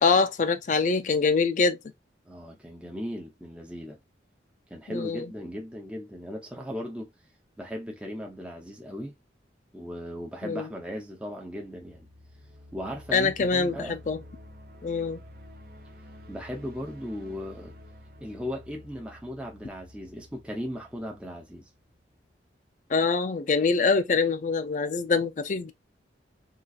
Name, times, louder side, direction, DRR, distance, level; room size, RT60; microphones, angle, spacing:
voice 1, 0.0-1.8 4.9-5.3 10.4-10.7 13.1-14.2 14.8-15.2 22.9-25.7, left 4 dB, 40° left, 0.4 m, -24 dB
voice 2, 2.3-4.0 4.7-7.1 7.6-9.1 9.7-12.1 12.7-14.0 16.3-17.7 18.2-21.6, equal, 5° right, 0.6 m, -37 dB
sound 1, 11.4-22.2, left 1 dB, 50° right, 0.6 m, -50 dB
3.8 x 2.4 x 2.4 m
head